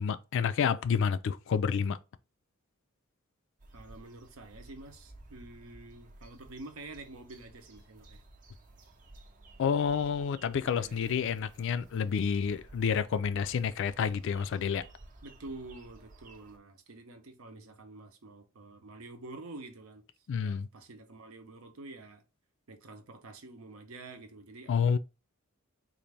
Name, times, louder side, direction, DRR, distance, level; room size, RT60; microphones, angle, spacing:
voice 1, 0.0-2.0 9.6-14.8 20.3-20.7 24.7-25.0, left 6 dB, 60° left, 0.3 m, -29 dB
sound 1, 3.6-16.6, right 2 dB, 35° right, 0.6 m, -55 dB
voice 2, 3.7-8.2 10.6-11.2 15.2-20.0 20.4-22.2 22.7-24.7, right 2 dB, 75° right, 0.8 m, -48 dB
4.0 x 2.6 x 3.3 m
head